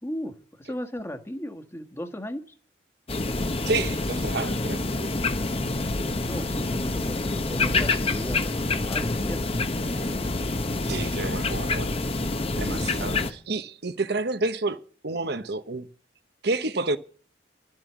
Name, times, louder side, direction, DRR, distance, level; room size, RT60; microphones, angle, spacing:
voice 1, 0.0-2.4 6.3-9.6 12.7-13.2, equal, 15° left, 1.5 m, -36 dB
sound 1, 3.1-13.3, left 2 dB, 35° left, 1.0 m, -27 dB
voice 2, 3.7-5.1 10.8-11.9 12.5-14.8 15.0-15.9 16.4-17.0, right 3 dB, 65° right, 1.1 m, -29 dB
12.5 x 7.7 x 9.2 m
head